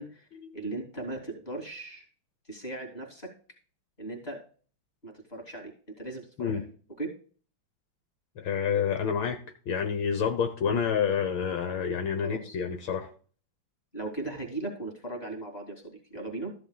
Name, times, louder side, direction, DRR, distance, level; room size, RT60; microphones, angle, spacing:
voice 1, 0.5-2.0 2.5-3.3 4.0-4.4 5.0-5.7 6.0-6.7 7.0-7.1 12.2-12.6 13.9-16.5, right 2 dB, 20° left, 1 dB, 2.6 m, -38 dB
voice 2, 8.4-9.4 9.7-13.1, left 7 dB, 75° left, 5 dB, 1.8 m, -28 dB
13.5 x 10.5 x 2.3 m, 0.41 s
omnidirectional pair, 2.2 m